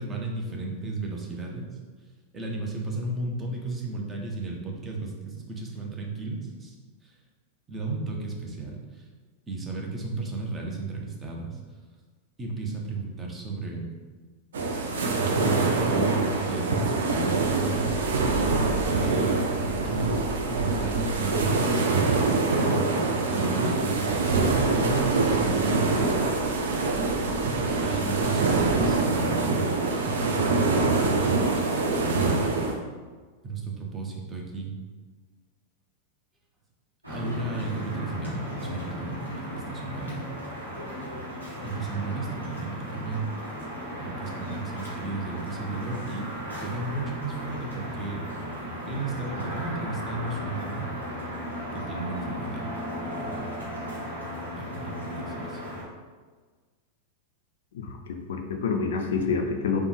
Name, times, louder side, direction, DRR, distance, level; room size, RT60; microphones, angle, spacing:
voice 1, 0.0-1.8 2.3-6.8 7.0-7.2 7.7-9.1 9.5-11.6 12.4-13.9 15.3-18.4 18.8-19.5 19.8-22.7 23.3-26.1 27.8-30.7 32.0-32.7 33.4-34.8 37.1-40.3 41.6-43.3 44.0-46.3 46.6-48.3 48.8-50.9 51.7-52.7 53.2-53.8 54.6-55.6, right 3 dB, 20° right, -1 dB, 0.6 m, -34 dB
sound 1, 14.5-32.7, right 3 dB, 65° right, 0.4 m, -24 dB
sound 2, 37.0-55.8, equal, 85° right, 0.9 m, -36 dB
voice 2, 57.7-59.8, left 5 dB, 60° left, 3 dB, 0.3 m, -28 dB
3.3 x 2.1 x 3.1 m, 1.4 s
figure-of-eight pair, 90°, 0 cm